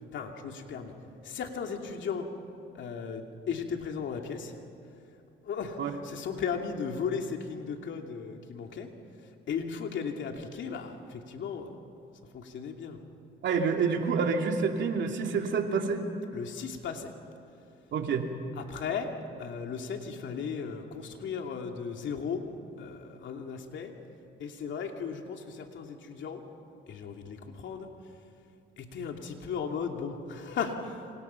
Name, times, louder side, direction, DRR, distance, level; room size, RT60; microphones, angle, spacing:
voice 1, 0.1-0.9 1.2-2.3 2.8-4.5 5.4-8.9 9.5-11.7 12.3-13.0 16.3-17.1 18.5-19.1 19.4-22.4 22.8-23.9 24.4-26.4 26.9-27.9 28.8-31.0, left 6 dB, 70° left, 3 dB, 2.8 m, -36 dB
voice 2, 13.4-16.0 17.9-18.3, right 5 dB, 70° right, 3 dB, 2.7 m, -28 dB
29.0 x 26.0 x 5.8 m, 2.7 s
cardioid pair, 90°, 20 cm